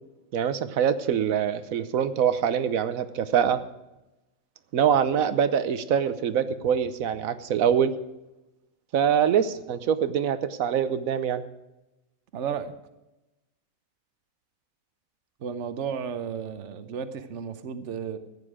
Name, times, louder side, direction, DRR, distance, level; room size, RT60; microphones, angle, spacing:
voice 1, 0.3-3.6 4.7-7.9 8.9-11.4, right 8 dB, 85° right, 12 dB, 1.3 m, -24 dB
voice 2, 12.3-12.7 15.4-18.2, right 7 dB, 65° right, 10 dB, 1.2 m, -33 dB
15.0 x 9.8 x 4.9 m, 0.98 s
omnidirectional pair, 1.4 m